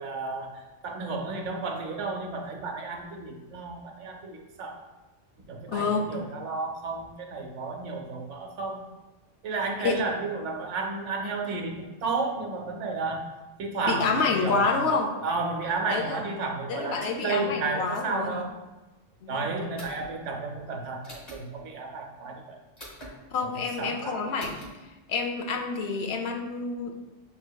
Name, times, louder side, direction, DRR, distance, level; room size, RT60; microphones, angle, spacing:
voice 1, 0.0-4.8 5.4-8.9 9.4-13.3 13.6-18.5 19.3-22.6 23.8-24.2, right 4 dB, 80° right, 2 dB, 1.0 m, -32 dB
voice 2, 5.7-6.1 9.8-10.0 13.8-15.2 15.9-16.2 16.7-18.4 19.2-19.5 23.3-24.6 25.1-26.9, left 4 dB, 65° left, 4 dB, 0.8 m, -28 dB
sound 1, 19.8-20.1 21.0-21.4 22.8-23.1 24.4-24.7, equal, 35° left, 1.2 m, -43 dB
7.6 x 2.7 x 2.2 m, 1.1 s
omnidirectional pair, 1.2 m